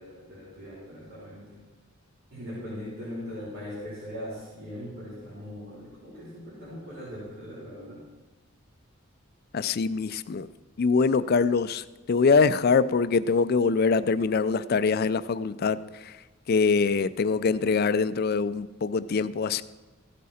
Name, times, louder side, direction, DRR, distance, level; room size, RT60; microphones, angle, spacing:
voice 1, 0.0-1.6 2.3-8.0, equal, 70° right, -11 dB, 4.0 m, -40 dB
voice 2, 9.5-10.5 10.8-16.1 16.5-19.6, left 4 dB, 45° left, 15 dB, 0.4 m, -24 dB
15.0 x 8.5 x 4.2 m, 1.2 s
head